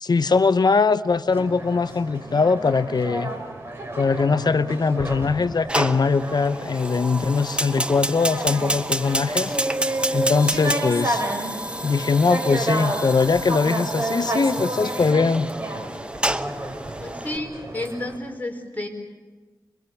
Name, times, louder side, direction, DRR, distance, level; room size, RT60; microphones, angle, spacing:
voice 1, 0.0-3.3 3.9-9.5 10.1-11.2 11.8-15.5, left 4 dB, 60° left, 13 dB, 0.8 m, -21 dB
sound 1, 1.3-18.2, right 1 dB, 30° right, 6.5 m, -31 dB
Fire, 5.7-17.4, right 1 dB, 15° right, 1.0 m, -29 dB
voice 2, 17.0-18.9, left 1 dB, 20° left, 2 dB, 4.6 m, -31 dB
26.0 x 22.0 x 7.2 m, 1.3 s
wide cardioid pair, 65°, 8 cm